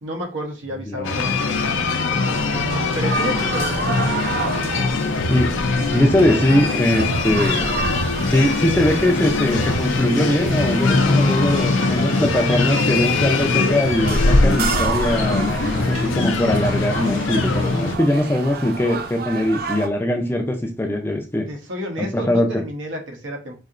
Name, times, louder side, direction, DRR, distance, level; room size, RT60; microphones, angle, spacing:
voice 1, 0.0-2.6 2.9-4.0 21.5-23.5, right 1 dB, 85° right, 2 dB, 0.9 m, -31 dB
sound 1, 1.0-18.0, left 3 dB, 85° left, 0.6 m, -21 dB
sound 2, 2.2-19.9, right 5 dB, 50° right, 0.4 m, -31 dB
voice 2, 5.9-7.7 8.3-21.5 22.0-22.5, left 1 dB, 10° left, 3 dB, 0.5 m, -21 dB
4.2 x 2.8 x 2.5 m, 0.32 s
head